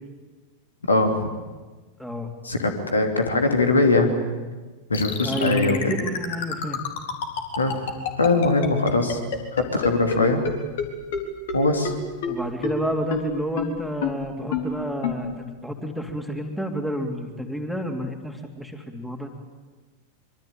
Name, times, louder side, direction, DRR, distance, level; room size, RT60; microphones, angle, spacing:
voice 1, 0.9-1.3 2.4-4.1 4.9-5.8 7.6-7.8 8.2-9.2 9.5-10.4 11.5-11.9, left 2 dB, 75° left, 5 dB, 3.1 m, -21 dB
voice 2, 2.0-2.3 5.2-6.8 12.2-19.3, equal, ahead, 4 dB, 3.2 m, -30 dB
sound 1, 4.9-10.2 10.4-10.5 10.8-10.9 11.1-11.2 11.5-11.6 11.8-11.9 12.2-12.3 12.6-12.7 13.1-13.2 13.6-13.7 14.0-14.1 14.5-14.6 15.0-15.1, left 7 dB, 55° left, 3.8 m, -26 dB
25.5 x 24.0 x 9.0 m, 1.3 s
figure-of-eight pair, 90°, 0 cm